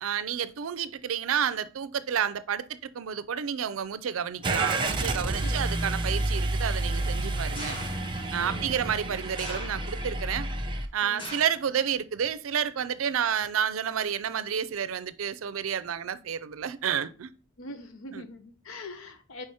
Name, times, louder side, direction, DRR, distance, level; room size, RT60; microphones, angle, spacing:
voice 1, 0.0-7.8 8.3-10.5 10.9-17.3 18.1-18.3, right 8 dB, 90° right, 0.5 m, -30 dB
Car / Engine starting, 4.4-10.9, right 2 dB, 25° right, 0.7 m, -30 dB
sound 1, 7.5-8.2 9.4-10.1 11.2-11.7 12.1-12.6 13.4-13.5, left 1 dB, 25° left, 1.8 m, -41 dB
voice 2, 8.4-8.7 11.0-11.3 17.6-19.5, left 2 dB, 85° left, 0.9 m, -43 dB
4.9 x 4.8 x 4.2 m
head